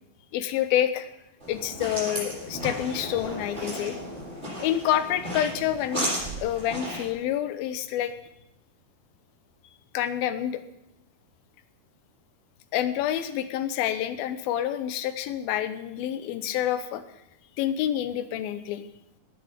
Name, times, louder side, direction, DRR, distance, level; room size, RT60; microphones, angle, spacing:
voice 1, 0.3-1.1 1.5-4.0 4.6-6.1 6.4-8.1 9.9-10.6 12.7-17.0 17.6-18.8, left 11 dB, 75° left, 11 dB, 2.5 m, -28 dB
sound 1, 1.4-7.1, equal, 15° right, 7.4 m, -34 dB
16.5 x 9.6 x 5.1 m, 0.83 s
omnidirectional pair, 4.6 m